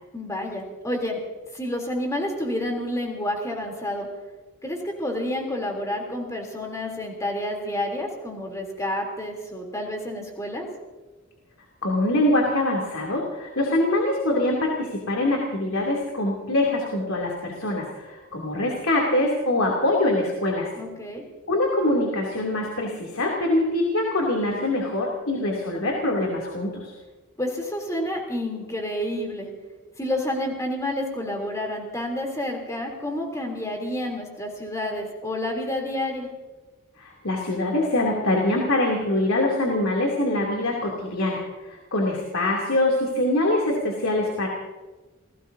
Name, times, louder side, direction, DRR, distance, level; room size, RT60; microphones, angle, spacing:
voice 1, 0.1-1.2 1.5-4.1 4.6-10.7 20.8-21.2 27.4-29.5 30.0-36.3, left 1 dB, 15° left, 1 dB, 3.3 m, -29 dB
voice 2, 11.8-20.7 21.5-26.9 37.0-44.5, left 1 dB, 85° left, -1 dB, 2.9 m, -24 dB
28.5 x 18.0 x 2.8 m, 1.2 s
head